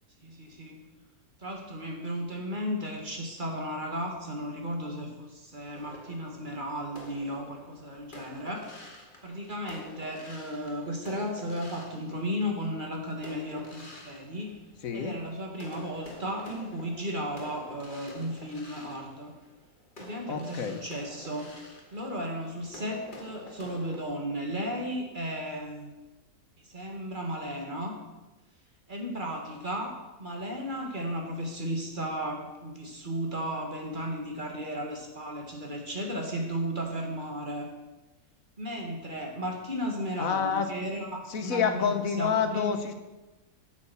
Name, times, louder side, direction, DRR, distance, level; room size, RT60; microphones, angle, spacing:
voice 1, 0.2-0.8 1.4-8.6 9.2-14.5 14.9-19.3 20.0-21.5 21.9-25.9 26.7-27.9 28.9-37.7 38.6-41.9 42.1-42.7, equal, 35° right, 1 dB, 1.7 m, -35 dB
sound 1, 5.7-12.7 13.2-15.2 15.5-24.0, left 1 dB, 35° left, 1.8 m, -49 dB
voice 2, 14.8-15.2 20.3-20.8 40.2-40.7 41.3-42.9, left 6 dB, 70° left, 8 dB, 1.3 m, -28 dB
8.7 x 7.2 x 6.8 m, 1.1 s
omnidirectional pair, 1.5 m